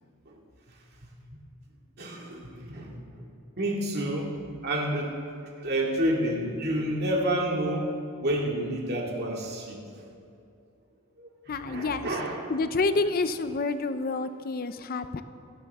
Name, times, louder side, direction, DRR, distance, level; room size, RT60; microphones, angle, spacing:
voice 1, 2.0-3.3 3.6-5.1 5.6-7.9 8.2-9.8 11.2-12.5, right 1 dB, 50° right, -1 dB, 2.3 m, -29 dB
voice 2, 11.5-12.1 12.5-15.2, left 3 dB, 45° left, 11 dB, 0.5 m, -28 dB
26.5 x 12.5 x 3.6 m, 2.6 s
head